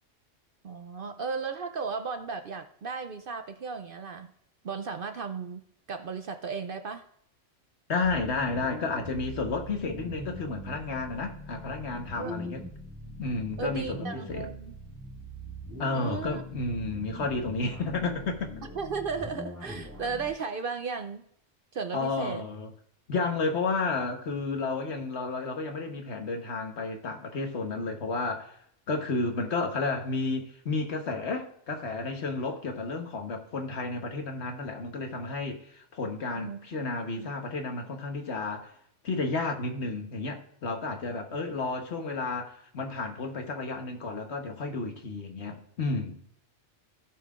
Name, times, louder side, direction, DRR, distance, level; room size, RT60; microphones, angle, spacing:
voice 1, 0.6-4.3 4.6-5.6 5.9-7.1 12.2-12.3 13.6-14.7 15.9-16.4 18.8-21.2 21.7-22.4 36.4-37.3, right 5 dB, 55° right, 0.7 m, -35 dB
voice 2, 7.9-12.6 13.2-14.5 15.8-18.5 21.9-22.7 23.1-28.6 28.9-38.7 39.0-46.2, left 3 dB, 60° left, 1.4 m, -32 dB
sound 1, 8.0-20.3, equal, 10° right, 2.2 m, -42 dB
16.5 x 5.6 x 2.4 m
omnidirectional pair, 1.3 m